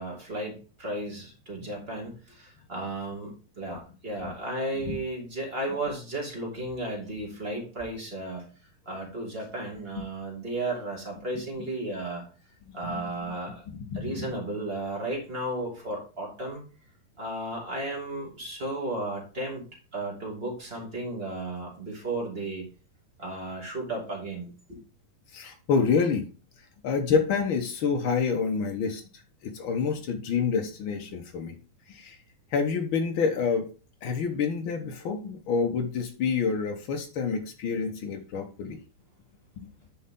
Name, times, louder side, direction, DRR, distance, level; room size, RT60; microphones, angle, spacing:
voice 1, 0.0-8.4 8.9-12.2 12.7-13.7 13.9-16.6 17.2-19.6 19.9-22.6 23.2-24.8, right 2 dB, 20° right, -2 dB, 2.4 m, -34 dB
voice 2, 13.7-14.3 25.3-26.3 26.8-31.6 31.9-32.2 32.5-33.7 34.0-38.8 39.6-39.7, left 5 dB, 80° left, 3 dB, 1.1 m, -28 dB
9.9 x 5.4 x 3.8 m, 0.35 s
omnidirectional pair, 3.9 m